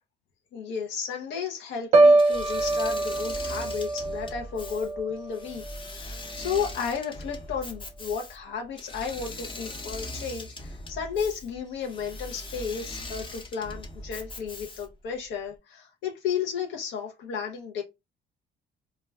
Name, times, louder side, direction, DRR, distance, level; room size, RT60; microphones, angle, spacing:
voice 1, 0.5-17.8, left 6 dB, 80° left, 0.6 m, -33 dB
Piano, 1.9-5.9 6.3-6.7, right 2 dB, 35° right, 0.4 m, -24 dB
Engine / Mechanisms, 2.2-15.1, left 2 dB, 25° left, 0.7 m, -40 dB
2.3 x 2.1 x 3.4 m
cardioid pair, 115°, 19 cm